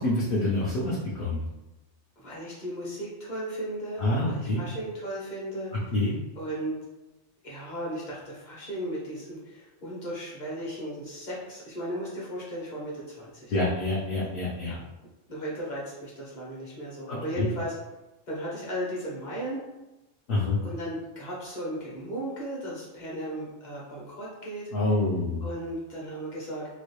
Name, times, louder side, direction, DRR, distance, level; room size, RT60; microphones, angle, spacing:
voice 1, 0.0-1.4 4.0-4.6 5.7-6.1 13.5-14.7 17.1-17.5 20.3-20.6 24.7-25.4, left 2 dB, 55° left, -5 dB, 0.8 m, -27 dB
voice 2, 2.2-5.7 6.4-6.7 7.4-13.7 14.6-14.8 15.3-17.7 18.3-19.6 20.6-24.7 25.4-26.7, right 1 dB, 40° left, -6 dB, 1.1 m, -36 dB
3.0 x 2.6 x 3.1 m, 1.0 s
omnidirectional pair, 1.2 m